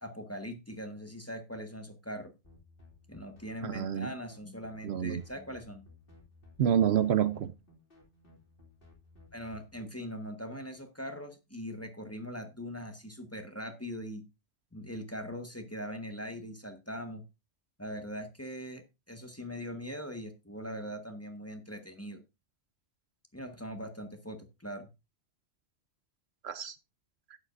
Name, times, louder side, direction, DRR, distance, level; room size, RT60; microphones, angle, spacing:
voice 1, 0.0-2.3 3.1-5.8 9.3-14.2 14.7-17.2 17.8-22.2 23.3-24.9, equal, 15° left, 1.3 m, -41 dB
sound 1, 2.4-9.8, left 3 dB, 50° left, 2.8 m, -59 dB
voice 2, 3.6-4.1 4.8-5.2 6.6-7.5 26.4-26.8, right 9 dB, 70° right, 0.9 m, -28 dB
11.5 x 9.4 x 2.5 m
omnidirectional pair, 1.2 m